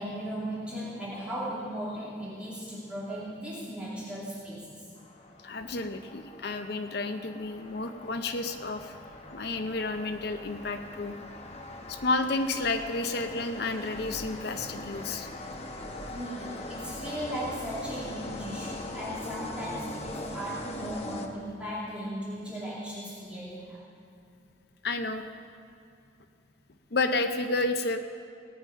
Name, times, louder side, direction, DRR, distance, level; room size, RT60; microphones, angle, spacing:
voice 1, 0.0-4.9 5.6-5.7 16.1-23.8, equal, 5° right, -9 dB, 2.6 m, -37 dB
sound 1, 5.0-21.8, left 1 dB, 30° left, 1.0 m, -41 dB
voice 2, 5.4-8.9 9.3-11.1 11.9-15.3 24.8-25.2 26.9-28.0, left 3 dB, 55° left, 8 dB, 0.6 m, -31 dB
18.5 x 9.1 x 5.2 m, 2.5 s
head